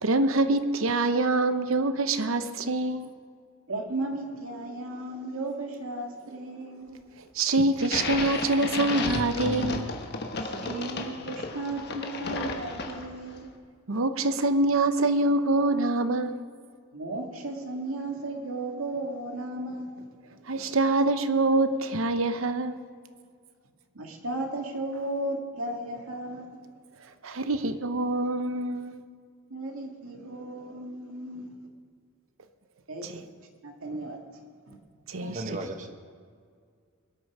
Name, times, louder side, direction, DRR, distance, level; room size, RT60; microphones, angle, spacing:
voice 1, 0.0-3.1 7.4-9.9 13.9-16.4 20.5-22.8 27.2-29.0 35.1-35.4, right 2 dB, 70° right, 11 dB, 0.8 m, -25 dB
voice 2, 3.7-7.0 10.4-13.5 16.9-20.1 23.9-26.5 29.5-31.6 32.9-33.3 33.6-34.4 34.7-34.8, right 2 dB, 90° right, 2 dB, 2.0 m, -35 dB
sound 1, 7.8-13.3, left 3 dB, 50° left, 1.3 m, -33 dB
voice 3, 35.2-35.9, right 2 dB, 35° right, 6 dB, 1.2 m, -35 dB
22.5 x 8.7 x 5.0 m, 2.1 s
head